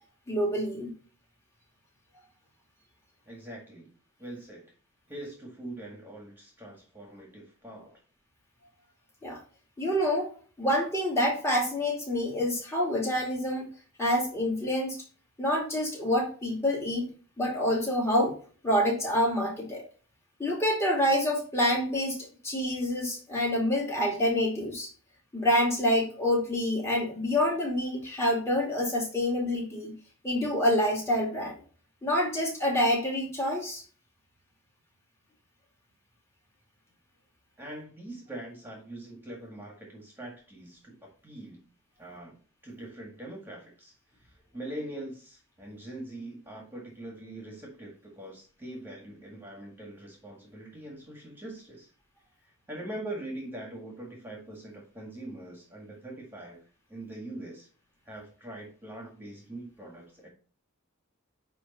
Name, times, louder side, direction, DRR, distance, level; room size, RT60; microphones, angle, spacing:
voice 1, 0.3-0.9 9.2-9.4 9.8-10.3 10.6-13.6 14.0-15.0 15.4-17.1 17.4-18.4 18.6-19.8 20.4-22.2 22.4-24.9 25.3-29.9 30.2-31.5 32.0-33.8, left 1 dB, 15° left, -3 dB, 2.3 m, -27 dB
voice 2, 3.3-3.9 4.2-4.6 5.1-8.0 37.6-41.6 42.0-42.4 42.6-43.9 44.2-51.9 52.4-56.6 56.9-57.7 58.0-60.3, right 1 dB, 10° right, -1 dB, 1.8 m, -43 dB
9.7 x 3.2 x 4.1 m, 0.39 s
head